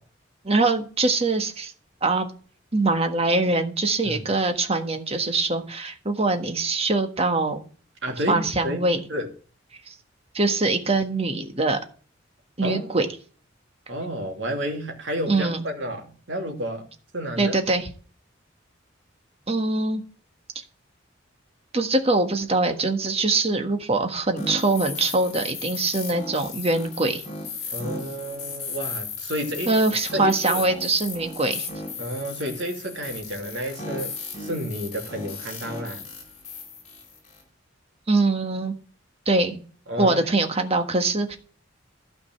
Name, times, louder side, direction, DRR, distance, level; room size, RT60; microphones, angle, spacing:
voice 1, 0.4-1.7 2.0-2.3 2.7-7.6 8.3-9.0 9.9-10.0 10.3-11.8 12.6-13.1 15.3-15.6 17.4-17.9 19.5-20.0 21.7-27.2 29.7-31.7 38.1-38.7 39.3-39.6 40.0-41.4, right 2 dB, 30° right, 1.5 m, -23 dB
voice 2, 8.0-8.8 9.1-9.3 12.6-13.0 13.9-16.9 17.1-17.6 27.7-29.7 30.1-30.6 32.0-36.1 39.9-40.2, equal, 65° right, 2.7 m, -31 dB
sound 1, 24.4-37.4, left 4 dB, 35° left, 4.4 m, -35 dB
12.5 x 5.2 x 7.5 m
head